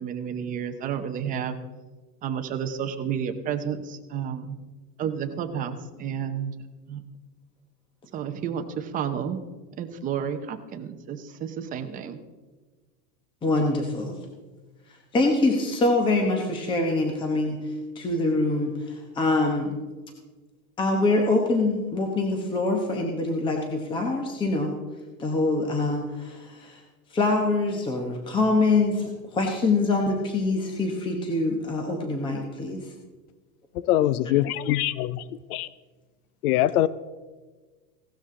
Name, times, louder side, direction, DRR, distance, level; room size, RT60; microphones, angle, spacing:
voice 1, 0.0-1.6 2.2-4.6 5.0-6.5 6.9-7.0 8.1-9.4 9.8-12.2, right 8 dB, 15° right, 7 dB, 0.7 m, -31 dB
voice 2, 13.4-14.2 15.1-19.7 20.8-24.7 25.2-26.8 27.1-32.9, left 2 dB, 10° left, 2 dB, 1.0 m, -24 dB
voice 3, 33.9-35.2 35.5-35.7 36.4-36.9, left 14 dB, 70° left, 17 dB, 0.6 m, -23 dB
17.0 x 12.5 x 3.7 m, 1.3 s
supercardioid pair, 160°, 47 cm